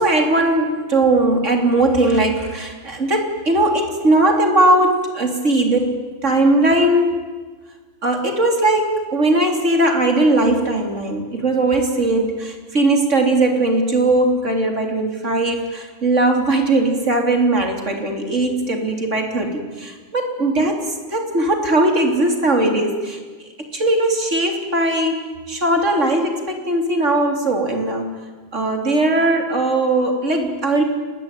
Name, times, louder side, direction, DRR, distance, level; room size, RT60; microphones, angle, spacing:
voice 1, 0.0-7.2 8.0-23.2 23.7-28.1 28.5-30.8, right 2 dB, 20° right, 4 dB, 3.3 m, -19 dB
30.0 x 20.5 x 9.2 m, 1.4 s
omnidirectional pair, 4.0 m